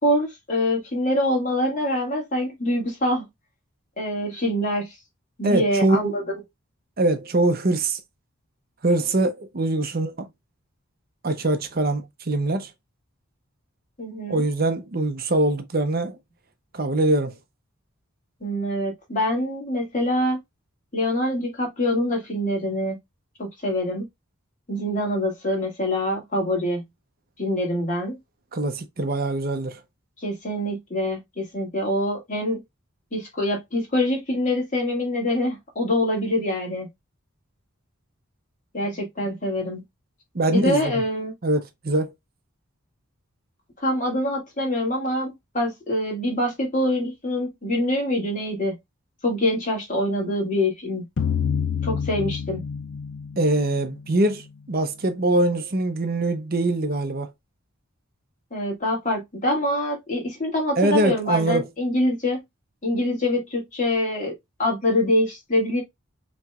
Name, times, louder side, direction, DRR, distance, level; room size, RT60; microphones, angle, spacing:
voice 1, 0.0-3.2 4.0-4.9 5.4-6.2 14.0-14.4 18.4-20.4 20.9-23.0 23.4-24.0 24.7-26.8 27.4-28.2 30.2-32.6 33.1-36.9 38.7-39.8 40.5-41.3 43.8-48.8 49.2-51.0 51.8-52.6 58.5-62.4 62.8-64.3 64.6-65.8, left 1 dB, 35° left, 2.1 m, -25 dB
voice 2, 5.4-6.1 7.0-8.0 8.8-10.3 11.2-12.7 14.3-16.2 16.7-17.3 28.5-29.8 40.3-41.0 41.4-42.1 53.4-54.4 54.7-57.3 60.8-61.7, right 2 dB, 45° right, 0.7 m, -23 dB
sound 1, 51.2-54.3, left 7 dB, 60° left, 0.5 m, -28 dB
5.7 x 3.2 x 2.4 m
head